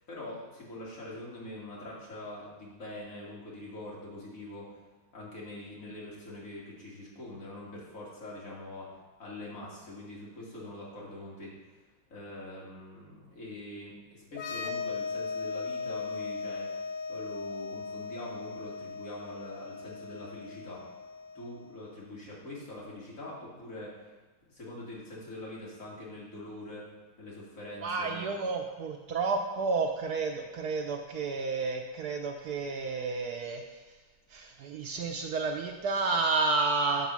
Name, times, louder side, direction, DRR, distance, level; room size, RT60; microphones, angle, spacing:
voice 1, 0.1-4.8 5.1-8.9 9.2-11.8 12.1-16.7 17.1-20.8 21.3-24.1 24.5-26.9 27.2-28.4, left 1 dB, 45° left, -6 dB, 2.4 m, -44 dB
sound 1, 14.3-21.8, left 4 dB, 70° left, 1.2 m, -38 dB
voice 2, 27.8-33.6 34.3-37.1, right 4 dB, 70° right, 3 dB, 0.9 m, -31 dB
7.4 x 4.1 x 6.1 m, 1.3 s
omnidirectional pair, 2.1 m